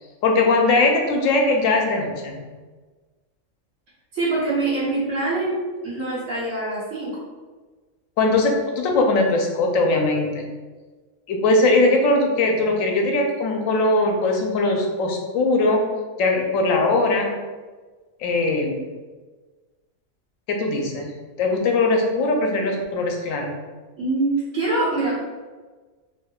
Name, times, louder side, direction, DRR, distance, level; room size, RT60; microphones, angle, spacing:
voice 1, 0.2-2.4 8.2-10.4 11.3-15.8 16.2-17.3 18.2-18.8 20.5-21.1 21.4-23.5, left 2 dB, 75° left, 2 dB, 0.9 m, -20 dB
voice 2, 4.1-5.5 5.8-7.1 24.0-25.2, right 2 dB, 65° right, -12 dB, 1.3 m, -24 dB
3.5 x 2.7 x 2.3 m, 1.3 s
omnidirectional pair, 1.4 m